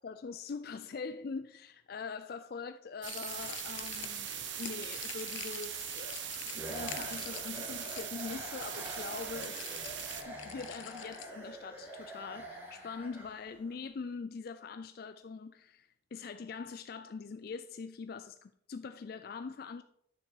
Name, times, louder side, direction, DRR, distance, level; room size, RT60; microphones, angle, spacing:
voice 1, 0.0-9.7 9.9-19.8, left 5 dB, 50° left, 0.3 m, -43 dB
sound 1, 3.0-10.2, right 9 dB, 70° right, 1.0 m, -41 dB
sound 2, 3.1-11.3, left 11 dB, 80° left, 0.7 m, -47 dB
sound 3, 6.5-13.7, right 1 dB, 10° right, 2.1 m, -46 dB
9.8 x 6.6 x 4.6 m
head